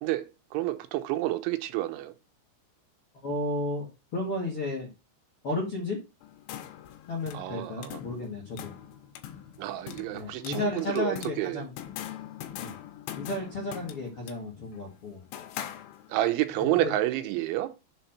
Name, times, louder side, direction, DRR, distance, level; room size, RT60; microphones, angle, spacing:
voice 1, 0.0-2.1 7.3-8.0 9.6-11.7 16.1-17.7, right 15 dB, 85° right, 3.2 m, -29 dB
voice 2, 3.2-4.9 5.4-6.0 7.1-8.7 10.1-11.7 12.6-12.7 13.1-15.2 16.6-16.9, left 2 dB, 55° left, 1.5 m, -33 dB
sound 1, 6.2-16.4, left 11 dB, 85° left, 3.2 m, -43 dB
7.3 x 4.2 x 5.8 m
omnidirectional pair, 5.4 m